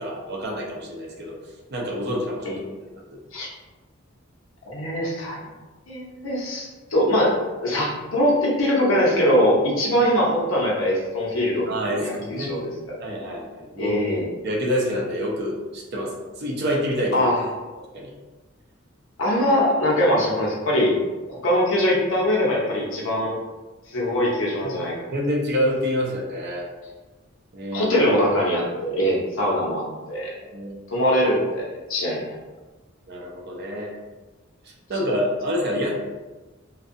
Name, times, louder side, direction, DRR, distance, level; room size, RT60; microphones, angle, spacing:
voice 1, 0.0-1.3 1.7-2.5 3.1-3.2 11.7-12.6 13.0-14.0 14.4-16.1 16.4-17.3 17.9-18.1 24.6-24.8 25.1-26.7 27.5-27.8 30.5-30.7 33.1-33.9 34.9-35.9, equal, 55° right, -1 dB, 0.5 m, -27 dB
voice 2, 4.7-5.4 5.9-7.3 7.6-12.6 12.9-13.0 13.8-14.3 17.1-17.4 19.2-20.9 21.3-23.4 23.9-25.1 27.7-29.8 30.1-30.3 30.9-32.4, equal, 70° left, -3 dB, 0.7 m, -22 dB
2.6 x 2.3 x 2.5 m, 1.2 s
head